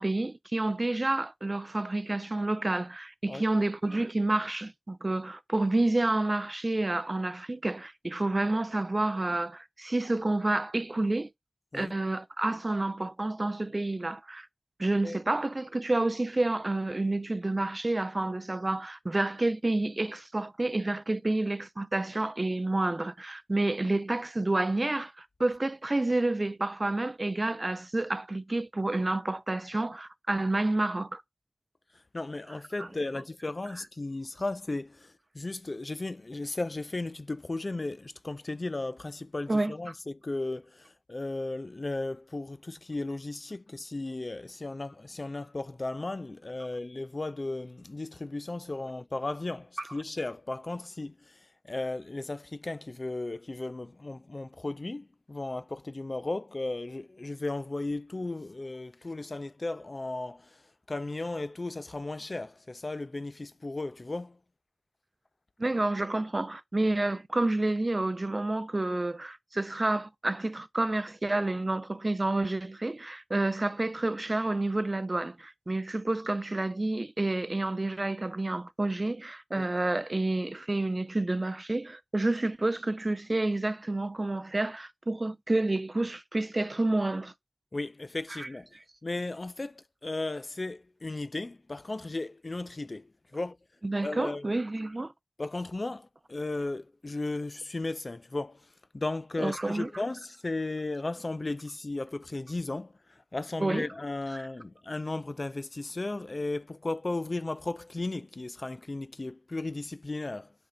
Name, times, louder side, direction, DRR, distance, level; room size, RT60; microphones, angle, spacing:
voice 1, 0.0-11.3 11.7-14.5 14.8-31.2 32.8-32.9 39.5-39.7 65.6-87.3 88.3-88.5 93.8-95.1 99.4-99.9 103.6-103.9 104.3-104.5, right 2 dB, 40° right, 0.4 m, -29 dB
voice 2, 31.9-60.6 60.9-64.4 79.6-79.7 87.7-88.7 89.0-93.6 94.0-94.4 95.4-110.5, left 2 dB, 45° left, 0.3 m, -35 dB
4.3 x 3.2 x 3.7 m
wide cardioid pair, 55°, 0 cm